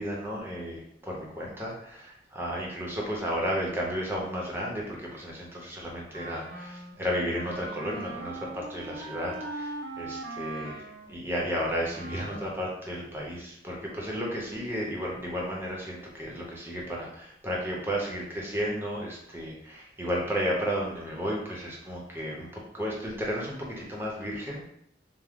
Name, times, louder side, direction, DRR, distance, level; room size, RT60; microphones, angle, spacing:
voice 1, 0.0-10.8 11.1-24.7, equal, 10° right, -3 dB, 0.7 m, -33 dB
Wind instrument woodwind instrument, 6.1-12.7, right 2 dB, 65° right, 0.8 m, -41 dB
3.5 x 2.1 x 3.6 m, 0.71 s
head